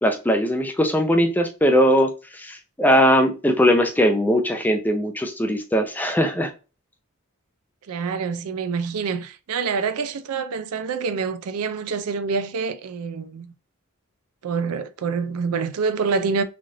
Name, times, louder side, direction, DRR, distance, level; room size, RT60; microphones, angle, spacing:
voice 1, 0.0-6.5, equal, 10° left, 0.5 m, -20 dB
voice 2, 7.9-13.5 14.4-16.4, right 5 dB, 80° right, 0.4 m, -26 dB
3.2 x 2.5 x 2.6 m
head